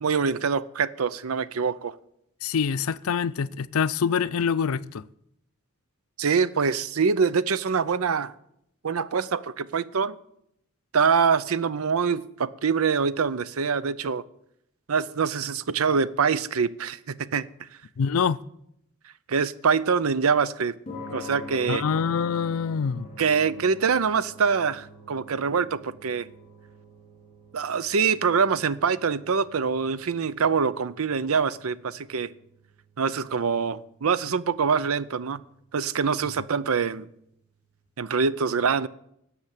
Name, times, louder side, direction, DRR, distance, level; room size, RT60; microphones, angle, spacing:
voice 1, 0.0-1.9 6.2-8.3 8.8-10.2 10.9-14.2 14.9-17.7 19.3-20.8 21.1-21.8 23.2-26.3 27.5-32.3 33.0-35.4 35.7-37.1 38.0-38.9, right 5 dB, 85° right, 0.6 m, -24 dB
voice 2, 2.4-5.0 18.0-18.4 21.7-23.1, left 6 dB, 85° left, 0.5 m, -25 dB
sound 1, 20.9-37.4, left 2 dB, 30° left, 4.2 m, -47 dB
12.0 x 7.4 x 8.3 m
head